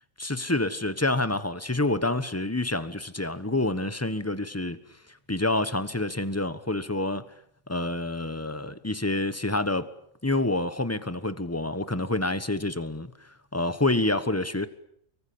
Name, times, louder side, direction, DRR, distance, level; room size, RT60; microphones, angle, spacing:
voice 1, 0.2-4.8 5.3-7.2 7.7-9.9 10.2-13.1 13.5-14.7, left 2 dB, 10° left, 1.2 m, -27 dB
25.0 x 23.5 x 8.7 m
omnidirectional pair, 1.4 m